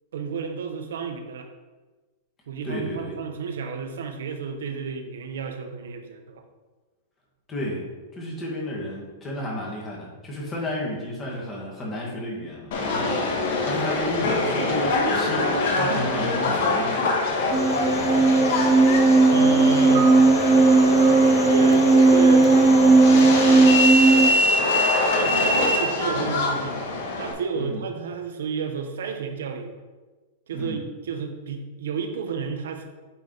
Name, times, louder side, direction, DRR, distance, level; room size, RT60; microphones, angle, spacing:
voice 1, 0.1-1.5 2.5-6.4 13.0-13.4 19.3-20.1 21.5-22.5 23.0-24.1 25.1-26.8 27.2-29.7 30.5-32.8, right 6 dB, 85° right, 6 dB, 0.9 m, -31 dB
voice 2, 2.6-3.2 7.5-7.8 8.1-13.2 13.6-17.2 27.5-27.8 30.5-30.8, left 1 dB, 15° left, -3 dB, 1.7 m, -32 dB
Subway metro underground, 12.7-27.3, left 2 dB, 60° left, 1.4 m, -24 dB
sound 1, 17.5-24.3, right 3 dB, 15° right, 0.3 m, -16 dB
sound 2, 19.9-26.4, right 7 dB, 50° right, 0.9 m, -40 dB
8.6 x 3.5 x 3.9 m, 1.3 s
supercardioid pair, 150°, 0 cm